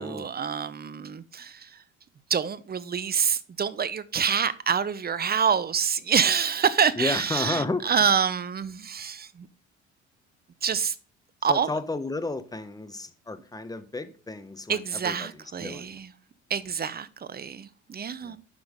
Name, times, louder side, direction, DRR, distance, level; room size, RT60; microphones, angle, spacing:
voice 1, 0.0-1.7 2.3-9.5 10.6-10.9 11.4-11.7 14.7-16.1 16.5-18.4, right 7 dB, 30° right, 0.8 m, -26 dB
voice 2, 6.9-7.9 11.4-15.9 18.2-18.4, left 2 dB, 10° left, 1.1 m, -32 dB
9.6 x 5.8 x 3.7 m
hypercardioid pair, 60°, 34 cm